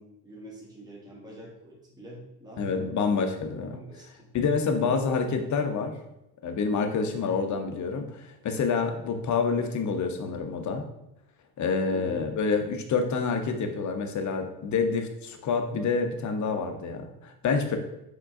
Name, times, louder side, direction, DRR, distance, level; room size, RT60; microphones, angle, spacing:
voice 1, 0.0-2.9 3.7-4.3 4.8-5.0 11.9-12.3, right 1 dB, 10° right, -3 dB, 1.4 m, -45 dB
voice 2, 2.6-3.8 4.3-5.9 6.4-10.8 11.6-17.8, left 5 dB, 35° left, 5 dB, 0.7 m, -27 dB
4.4 x 3.8 x 2.5 m, 0.86 s
hypercardioid pair, 70°, 50 cm